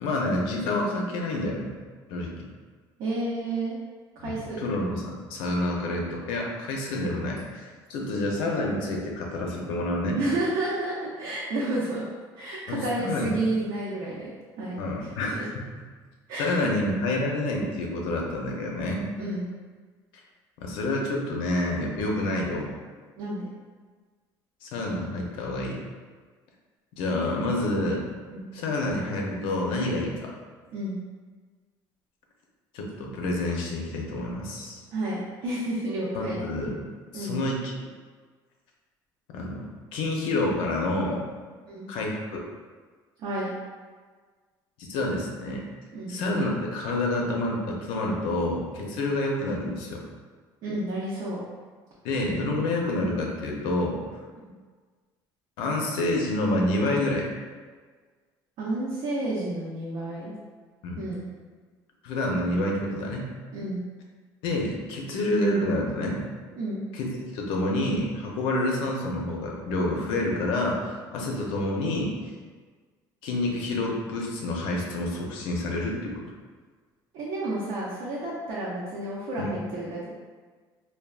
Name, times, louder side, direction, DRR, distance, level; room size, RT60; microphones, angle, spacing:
voice 1, 0.0-1.7 2.1-2.3 4.2-10.2 12.7-13.3 14.8-15.4 16.4-19.0 20.6-22.7 24.6-25.8 26.9-28.0 28.5-30.3 32.7-34.8 36.1-36.8 37.1-37.7 39.3-39.7 39.9-41.2 41.9-42.4 44.8-45.6 46.1-50.0 52.0-54.0 55.6-57.3 60.8-61.0 62.0-63.3 64.4-66.2 66.9-67.1 67.3-72.1 73.2-76.2 79.4-79.5, left 1 dB, 85° left, -1 dB, 0.6 m, -28 dB
voice 2, 3.0-3.8 4.2-4.7 10.2-12.0 12.4-14.3 14.6-14.7 15.0-15.4 16.3-16.7 19.2-19.5 23.2-23.5 28.3-28.4 30.7-31.0 34.9-36.4 37.1-37.4 41.7-41.9 43.2-43.5 45.9-46.2 48.7-49.0 50.6-51.4 58.6-60.3 61.0-61.3 63.5-63.8 66.6-66.8 77.1-80.1, right 2 dB, 65° right, -7 dB, 0.6 m, -31 dB
3.4 x 2.2 x 2.3 m, 1.5 s
cardioid pair, 140°, 9 cm